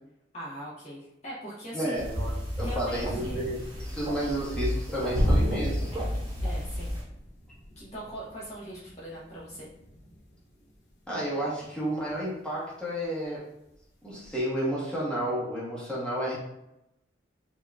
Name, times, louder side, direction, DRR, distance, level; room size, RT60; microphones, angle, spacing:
voice 1, 0.3-2.1 2.6-3.5 6.4-6.9 7.8-9.7, equal, 40° left, -7 dB, 1.0 m, -40 dB
voice 2, 1.7-3.5 3.8-5.9 11.1-13.4 14.0-16.4, right 1 dB, 5° left, -8 dB, 1.2 m, -31 dB
sound 1, 1.9-7.0, equal, 20° right, 1.4 m, -33 dB
sound 2, 3.0-12.7 13.0-13.2 13.7-14.4, equal, 70° left, 0.9 m, -34 dB
4.7 x 2.8 x 2.3 m, 0.85 s
head